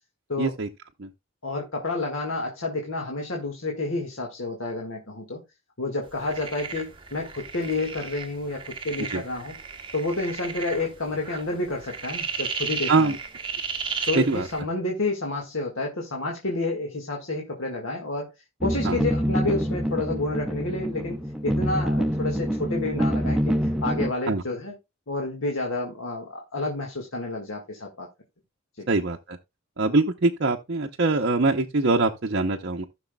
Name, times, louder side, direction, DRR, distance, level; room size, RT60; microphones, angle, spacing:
voice 1, 0.4-0.7 1.0-1.1 9.1-9.2 12.9-13.2 14.1-14.5 18.8-19.0 24.3-24.4 28.9-29.4 29.8-32.9, right 3 dB, 55° right, 0.7 m, -23 dB
voice 2, 1.4-5.4 5.8-9.6 9.9-13.1 14.1-18.3 18.6-21.2 21.4-24.8 25.1-28.1 28.8-28.9, left 2 dB, 70° left, 1.7 m, -30 dB
sound 1, 6.1-14.6, right 5 dB, 25° right, 1.2 m, -34 dB
sound 2, 18.6-24.1, equal, 5° right, 0.5 m, -26 dB
15.5 x 6.1 x 2.2 m
head